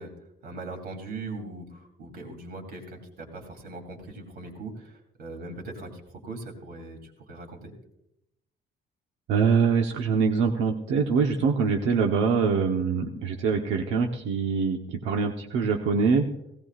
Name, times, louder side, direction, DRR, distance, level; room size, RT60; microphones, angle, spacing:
voice 1, 0.0-7.7, right 2 dB, 55° right, 3 dB, 2.8 m, -40 dB
voice 2, 9.3-16.3, right 5 dB, 90° right, 2 dB, 1.1 m, -24 dB
17.5 x 17.0 x 2.5 m, 0.80 s
cardioid pair, 180°, 19 cm